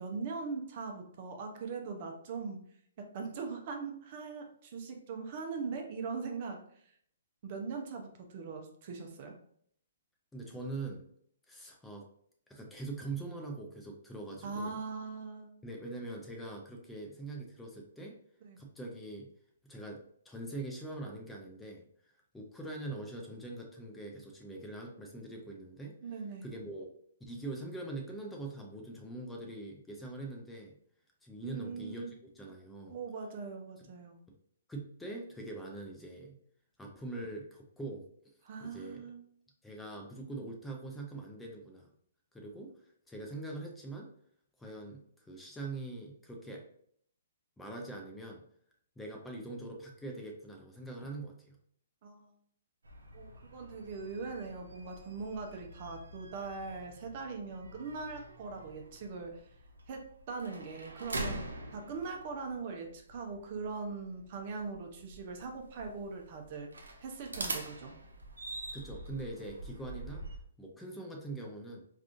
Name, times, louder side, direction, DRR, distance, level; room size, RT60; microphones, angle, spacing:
voice 1, 0.0-2.6 3.0-6.9 7.4-9.4 14.4-15.5 18.4-18.6 26.0-26.5 31.4-32.1 32.9-34.2 38.4-39.2 52.0-52.3 53.1-59.5 59.9-61.5 61.7-66.7 67.0-68.0, right 4 dB, 45° right, 3 dB, 0.6 m, -41 dB
voice 2, 10.3-11.1 11.5-12.1 12.5-14.8 15.6-18.2 18.6-19.3 19.6-21.8 22.3-26.0 26.4-26.9 27.3-30.8 31.2-33.0 34.7-36.4 36.8-38.0 38.6-39.0 39.6-41.9 42.3-42.7 43.1-44.1 44.6-46.6 47.6-48.4 49.0-51.6 68.7-70.3 70.6-71.8, right 2 dB, 5° left, 1 dB, 0.5 m, -43 dB
sound 1, 52.8-70.4, right 2 dB, 90° right, 0.6 m, -45 dB
3.5 x 2.4 x 2.5 m, 0.64 s
hypercardioid pair, 135°, 0 cm